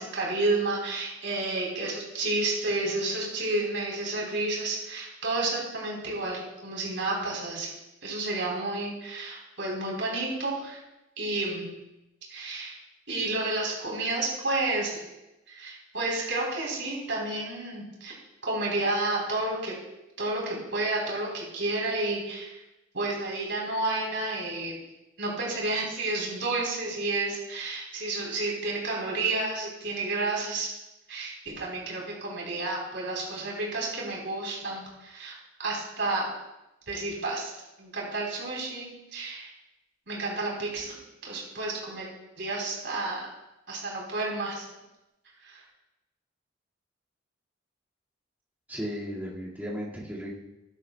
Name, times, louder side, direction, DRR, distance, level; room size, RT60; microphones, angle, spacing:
voice 1, 0.0-7.7 8.0-10.8 11.2-11.7 12.3-12.8 13.1-15.0 15.5-18.2 18.4-19.7 20.2-22.6 22.9-24.8 25.2-30.7 31.1-36.3 36.9-37.5 37.8-39.5 40.1-41.0 41.2-42.1 42.4-43.2 43.7-44.7 45.4-45.6, right 2 dB, 70° right, -3 dB, 3.8 m, -31 dB
voice 2, 48.7-50.4, equal, 10° right, -6 dB, 2.0 m, -35 dB
13.5 x 10.5 x 2.3 m, 0.97 s
head